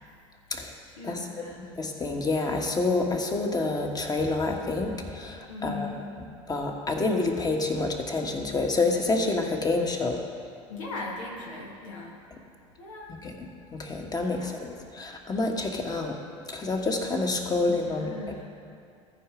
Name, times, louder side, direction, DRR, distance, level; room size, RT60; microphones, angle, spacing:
voice 1, 0.5-1.6 5.5-6.0 10.7-12.2 12.8-13.2 14.3-14.5 17.5-18.5, left 3 dB, 85° left, -3 dB, 1.4 m, -39 dB
voice 2, 1.6-5.9 6.5-10.2 13.1-16.1 16.5-18.1, left 3 dB, 25° left, 2 dB, 1.3 m, -28 dB
14.5 x 4.9 x 5.0 m, 2.3 s
hypercardioid pair, 80°, 16 cm